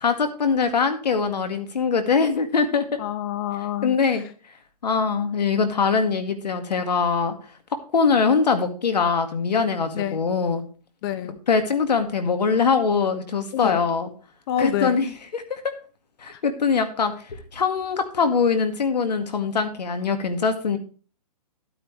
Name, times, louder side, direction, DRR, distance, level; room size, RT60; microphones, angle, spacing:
voice 1, 0.0-3.0 3.8-4.2 4.8-7.4 7.9-10.6 11.5-14.1 14.6-15.1 15.3-15.7 16.2-20.8, left 5 dB, 85° left, 8 dB, 1.9 m, -22 dB
voice 2, 3.0-4.0 9.9-10.2 11.0-11.4 13.5-13.8 14.5-15.1 16.3-16.4, left 10 dB, 35° left, 12 dB, 0.7 m, -27 dB
12.0 x 8.9 x 3.3 m, 0.39 s
hypercardioid pair, 150°, 21 cm